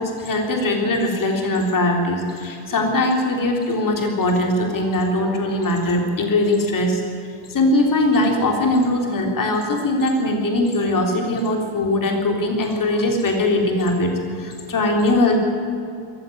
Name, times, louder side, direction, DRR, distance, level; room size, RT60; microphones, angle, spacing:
voice 1, 0.0-7.0 7.5-15.4, left 1 dB, 40° left, 2 dB, 3.7 m, -20 dB
21.5 x 15.0 x 9.3 m, 2.6 s
cardioid pair, 115°, 49 cm